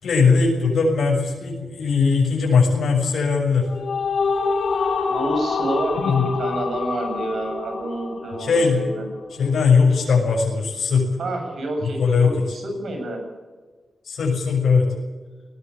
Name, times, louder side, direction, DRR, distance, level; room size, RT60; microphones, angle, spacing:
voice 1, 0.0-3.7 5.9-6.3 8.4-8.8 9.4-11.1 11.8-12.3 14.1-14.9, left 5 dB, 85° left, -1 dB, 6.8 m, -19 dB
sound 1, 3.5-8.9, left 4 dB, 65° left, 6.5 m, -26 dB
voice 2, 5.1-9.0 11.2-13.2, right 1 dB, 65° right, 4 dB, 7.4 m, -29 dB
20.0 x 18.5 x 8.5 m, 1.3 s
wide cardioid pair, 155°, 0 cm